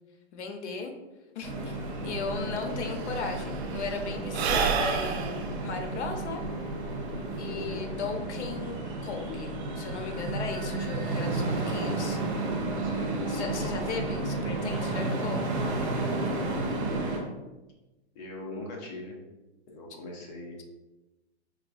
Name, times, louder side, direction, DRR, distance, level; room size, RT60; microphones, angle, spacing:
voice 1, 0.3-0.9 1.3-1.8 2.0-6.4 7.4-8.7 9.0-12.2 13.3-15.4, left 4 dB, 80° left, 4 dB, 0.8 m, -36 dB
sound 1, 1.4-17.2, right 2 dB, 50° right, 1.2 m, -32 dB
Sigh / Breathing, 2.3-2.4 2.6-7.3, right 6 dB, 65° right, 0.6 m, -31 dB
voice 2, 7.5-7.9 12.8-13.2 18.1-19.2 19.7-20.6, left 1 dB, 40° left, 0 dB, 0.9 m, -40 dB
4.6 x 2.3 x 2.6 m, 1.1 s
hypercardioid pair, 140°, 34 cm